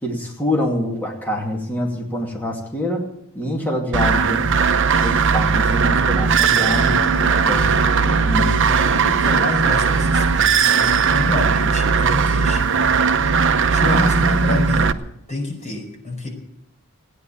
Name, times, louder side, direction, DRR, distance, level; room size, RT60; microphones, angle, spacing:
voice 1, 0.0-3.1 3.3-4.5 5.0-7.0 7.4-7.8 8.1-8.5 13.7-14.8, left 1 dB, 10° left, -2 dB, 2.4 m, -25 dB
sound 1, 3.9-14.9, right 5 dB, 60° right, 0.7 m, -18 dB
sound 2, 6.2-14.8, left 1 dB, 70° left, 2.1 m, -36 dB
voice 2, 8.6-12.9 13.7-14.9 15.3-16.3, left 2 dB, 30° left, 0 dB, 5.0 m, -28 dB
16.0 x 9.7 x 8.5 m, 0.83 s
head